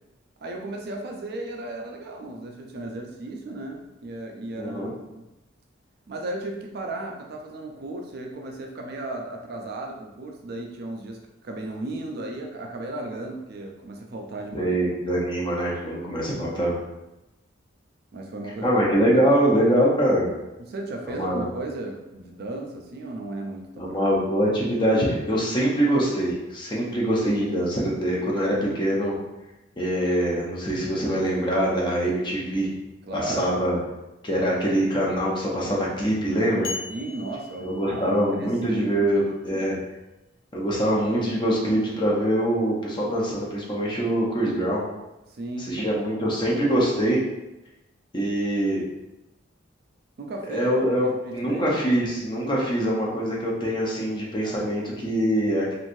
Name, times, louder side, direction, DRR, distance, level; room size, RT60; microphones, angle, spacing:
voice 1, 0.4-5.2 6.1-14.8 16.3-16.5 18.1-18.7 19.5-19.9 20.6-24.0 33.1-33.6 36.9-39.2 39.5-39.8 45.3-45.8 50.2-50.7 51.0-51.8 54.4-54.7, right 2 dB, 55° right, 1 dB, 0.4 m, -35 dB
voice 2, 4.6-4.9 14.5-16.8 18.6-20.3 21.1-21.5 23.8-29.1 29.8-32.7 33.1-33.8 34.2-36.7 37.6-39.8 40.5-44.9 45.6-47.2 48.1-48.8 50.5-55.7, right 1 dB, 25° left, -4 dB, 0.6 m, -24 dB
sound 1, 36.6-38.5, left 4 dB, 75° left, 0.5 m, -37 dB
3.1 x 2.5 x 2.6 m, 0.97 s
head